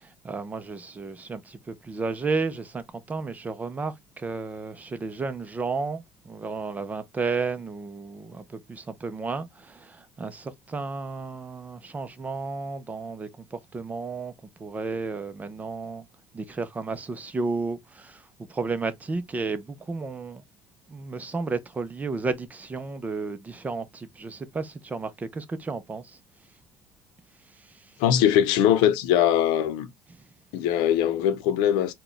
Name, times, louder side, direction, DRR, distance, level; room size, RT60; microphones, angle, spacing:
voice 1, 0.0-14.3 14.6-16.0 16.3-18.2 18.5-20.4 20.9-26.2, right 4 dB, 20° right, 0.6 m, -32 dB
voice 2, 28.0-29.9 30.5-31.9, left 10 dB, 80° left, 0.6 m, -21 dB
4.0 x 2.3 x 3.2 m
supercardioid pair, 110°, 7 cm